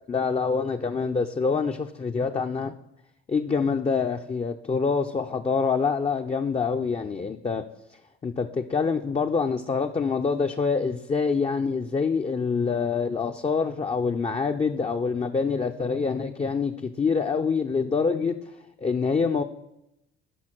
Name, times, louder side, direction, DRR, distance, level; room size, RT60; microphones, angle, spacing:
voice 1, 0.1-2.7 3.3-7.7 8.2-19.4, left 5 dB, 20° left, 4 dB, 0.5 m, -26 dB
12.5 x 5.7 x 4.5 m, 0.86 s
hypercardioid pair, 55°, 33 cm